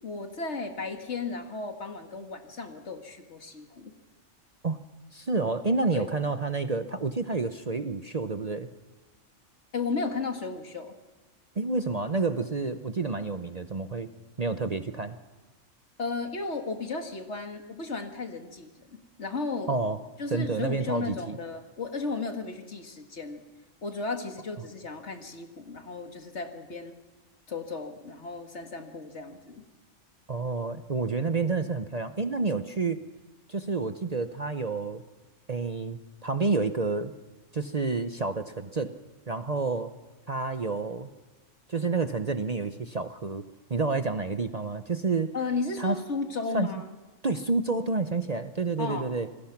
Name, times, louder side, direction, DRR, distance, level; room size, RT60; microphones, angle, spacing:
voice 1, 0.0-3.9 5.9-6.1 9.7-10.9 16.0-18.9 19.2-19.7 20.2-23.4 23.8-26.9 27.5-29.6 45.3-47.0 48.8-49.2, left 4 dB, 60° left, 5 dB, 2.2 m, -34 dB
voice 2, 5.1-8.7 11.6-14.1 14.4-15.2 19.7-20.0 20.3-21.4 30.3-33.0 33.5-35.0 35.5-37.1 37.5-38.9 39.3-39.9 40.3-41.1 41.7-43.4 43.7-45.3 45.8-46.0 46.5-46.7 47.2-49.3, right 3 dB, 35° right, 9 dB, 0.8 m, -29 dB
27.5 x 20.0 x 6.0 m, 1.2 s
omnidirectional pair, 1.3 m